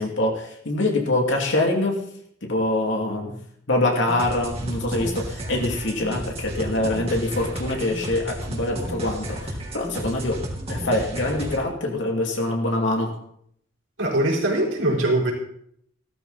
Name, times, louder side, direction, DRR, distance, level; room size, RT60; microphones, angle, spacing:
voice 1, 0.0-2.0 2.4-3.4 3.7-10.4 10.7-13.1, left 1 dB, 65° left, 1 dB, 2.7 m, -24 dB
sound 1, 4.1-11.6, equal, 30° right, 2.9 m, -33 dB
voice 2, 14.0-15.3, right 1 dB, 75° right, -1 dB, 4.5 m, -22 dB
16.0 x 13.0 x 4.1 m, 0.68 s
head